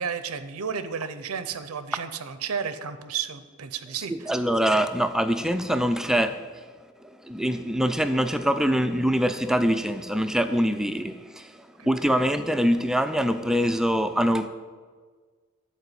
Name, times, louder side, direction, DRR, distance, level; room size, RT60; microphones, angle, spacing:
voice 1, 0.0-4.3 11.8-11.9, right 6 dB, 85° right, 0.6 m, -32 dB
voice 2, 3.9-6.6 7.0-11.6 11.8-14.5, equal, ahead, 0.3 m, -24 dB
11.0 x 4.6 x 8.0 m
head